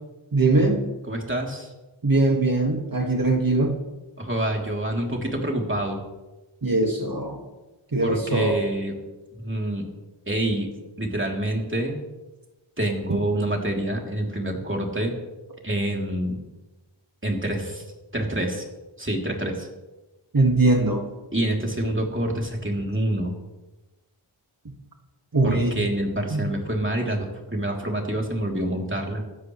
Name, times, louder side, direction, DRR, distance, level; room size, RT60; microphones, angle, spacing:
voice 1, 0.3-0.8 2.0-3.8 6.6-7.4 7.9-8.6 13.1-13.2 20.3-21.0 25.3-25.8 26.3-26.5, right 2 dB, 45° right, 2 dB, 1.9 m, -21 dB
voice 2, 1.1-1.7 4.2-6.0 8.0-8.9 9.4-9.9 10.3-10.7 11.0-12.0 12.8-15.2 15.6-16.4 17.2-17.8 18.1-18.6 19.0-19.7 21.3-23.4 25.4-29.2, right 1 dB, 25° right, 0 dB, 3.1 m, -27 dB
25.5 x 13.0 x 3.2 m, 1.1 s
wide cardioid pair, 60°, 49 cm